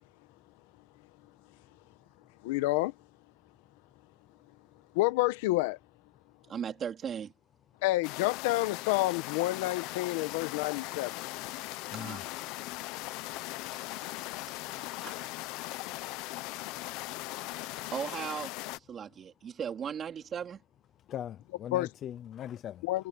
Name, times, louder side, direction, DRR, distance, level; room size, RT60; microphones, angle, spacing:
voice 1, 2.4-2.9 4.9-5.8 7.8-11.2 21.7-21.9 22.8-23.1, left 19 dB, 60° left, 1.2 m, -29 dB
voice 2, 6.5-7.3 11.9-12.2 13.7-14.1 15.0-15.2 17.9-18.6 18.9-20.6, right 8 dB, 20° right, 3.8 m, -37 dB
sound 1, 8.0-18.8, left 19 dB, 45° left, 0.9 m, -39 dB
voice 3, 21.1-22.8, left 10 dB, 25° left, 0.6 m, -40 dB
supercardioid pair, 170°, 0 cm